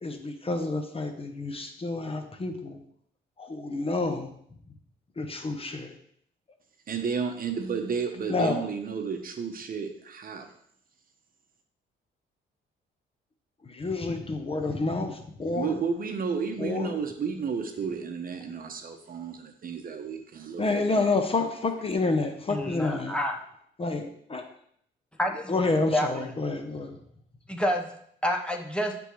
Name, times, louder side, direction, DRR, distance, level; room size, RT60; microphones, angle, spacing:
voice 1, 0.0-2.8 3.4-4.3 5.2-5.9 8.3-8.6 13.7-15.8 16.6-17.0 20.6-23.2 23.8-24.4 25.5-27.0, left 3 dB, 30° left, 6 dB, 0.7 m, -29 dB
voice 2, 6.9-10.5 15.5-21.1, right 5 dB, 45° right, 5 dB, 0.8 m, -32 dB
voice 3, 22.5-23.4 25.2-26.2 27.5-27.9 28.2-29.0, equal, 5° left, 3 dB, 0.8 m, -29 dB
9.8 x 3.4 x 3.1 m, 0.69 s
cardioid pair, 90°, 20 cm